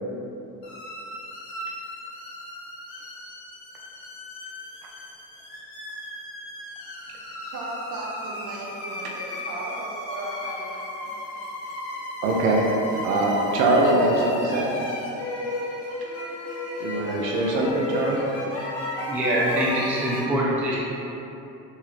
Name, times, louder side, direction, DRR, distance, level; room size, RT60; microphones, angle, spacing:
sound 1, 0.6-20.2, left 1 dB, 50° left, 1.1 m, -34 dB
voice 1, 7.5-11.1, right 2 dB, 40° right, -4 dB, 0.9 m, -36 dB
voice 2, 12.2-12.7 13.0-14.7 16.8-18.2, right 2 dB, 70° right, -1 dB, 0.6 m, -22 dB
voice 3, 19.1-20.8, right 1 dB, 5° right, -6 dB, 0.3 m, -24 dB
3.4 x 2.7 x 3.3 m, 3.0 s
hypercardioid pair, 65°, 49 cm